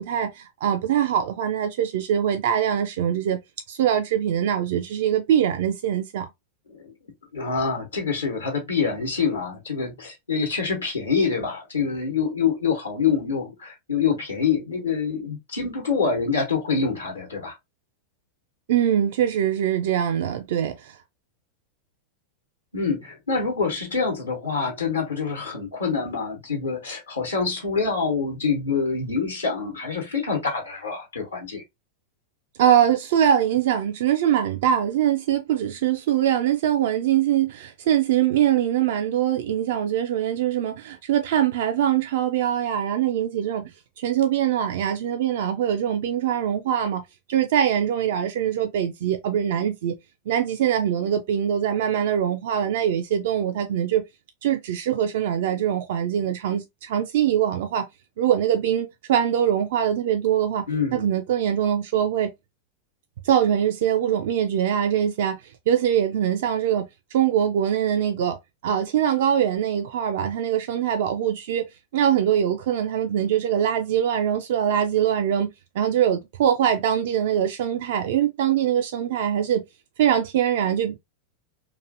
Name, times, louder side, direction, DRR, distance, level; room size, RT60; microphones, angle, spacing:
voice 1, 0.0-3.4 3.7-6.3 18.7-21.0 32.6-43.7 44.0-47.0 47.3-50.0 50.3-54.0 54.4-57.8 58.2-60.6 60.9-62.3 63.2-65.4 65.7-68.4 68.6-71.6 71.9-75.5 75.8-79.6 80.0-81.0, right 9 dB, 55° right, 0.3 m, -23 dB
voice 2, 7.3-17.5 22.7-31.6 60.7-61.1, left 5 dB, 75° left, 1.0 m, -26 dB
2.9 x 2.5 x 2.4 m
figure-of-eight pair, 90°, 0 cm